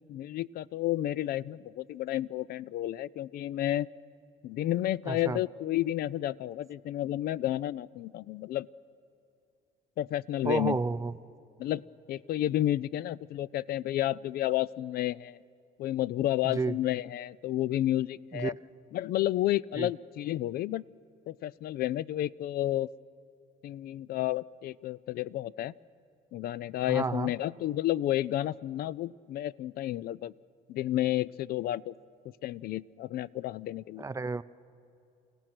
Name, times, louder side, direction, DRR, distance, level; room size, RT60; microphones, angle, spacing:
voice 1, 0.1-3.9 4.4-8.7 10.0-10.8 11.6-11.8 12.1-15.4 15.8-18.5 18.9-20.8 21.3-22.9 23.6-25.7 26.3-30.3 30.7-31.9 32.4-34.0, left 14 dB, 65° left, 21 dB, 0.4 m, -31 dB
voice 2, 5.1-5.4 10.4-11.1 16.4-16.8 18.3-18.5 19.8-19.9 26.9-27.3 34.0-34.4, right 4 dB, 20° right, 15 dB, 0.5 m, -31 dB
30.0 x 16.5 x 6.1 m, 2.6 s
cardioid pair, 110°, 17 cm